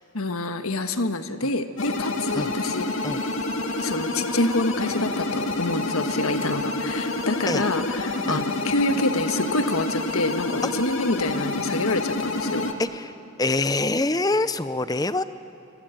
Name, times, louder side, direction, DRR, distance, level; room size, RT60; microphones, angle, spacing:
voice 1, 0.1-3.3 3.6-12.7, left 2 dB, 80° left, 8 dB, 1.5 m, -27 dB
sound 1, 1.8-12.7, left 2 dB, 65° left, 2.0 m, -28 dB
voice 2, 12.8-13.1 13.4-15.2, left 2 dB, 15° left, 13 dB, 0.6 m, -24 dB
26.5 x 24.0 x 9.1 m, 2.8 s
head